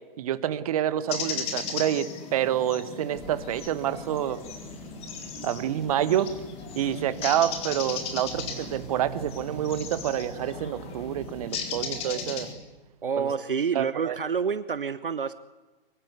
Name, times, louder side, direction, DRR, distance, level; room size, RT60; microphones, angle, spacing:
voice 1, 0.2-4.4 5.4-6.3 6.7-12.5 13.2-13.3 13.7-14.2, right 11 dB, 40° right, 14 dB, 1.4 m, -28 dB
sound 1, 1.1-12.5, left 5 dB, 20° left, 3.7 m, -37 dB
sound 2, 3.1-10.3, equal, ahead, 6.4 m, -50 dB
sound 3, 8.3-13.3, right 10 dB, 20° right, 2.8 m, -45 dB
voice 2, 13.0-15.3, right 6 dB, 65° right, 14 dB, 1.0 m, -28 dB
23.0 x 21.5 x 9.4 m, 1.2 s
figure-of-eight pair, 120°, 29 cm